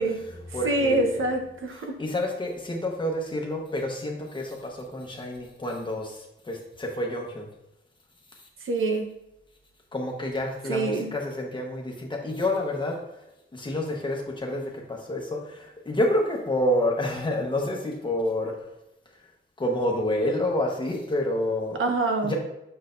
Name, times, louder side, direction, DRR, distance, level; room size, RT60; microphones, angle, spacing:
voice 1, 0.0-1.3 1.7-7.5 9.9-12.9 13.5-18.5 19.6-21.8 22.2-22.3, left 1 dB, 20° left, 0 dB, 1.1 m, -28 dB
voice 2, 0.6-1.9 8.6-9.1 10.7-11.1 21.8-22.3, right 2 dB, 70° right, 4 dB, 1.0 m, -25 dB
6.6 x 6.4 x 2.6 m, 0.89 s
wide cardioid pair, 165°, 21 cm